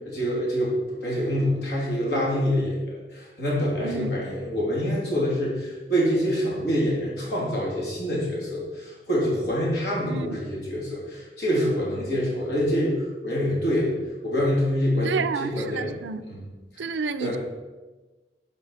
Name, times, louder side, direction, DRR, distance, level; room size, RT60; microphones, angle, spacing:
voice 1, 0.1-12.9 13.2-13.9 14.2-16.0 16.2-16.4 16.8-16.9 17.2-17.4, equal, 70° left, 3.2 m, -26 dB
voice 2, 10.1-10.4 15.0-16.2 16.8-17.4, right 5 dB, 85° right, 0.5 m, -30 dB
11.0 x 5.5 x 4.3 m
head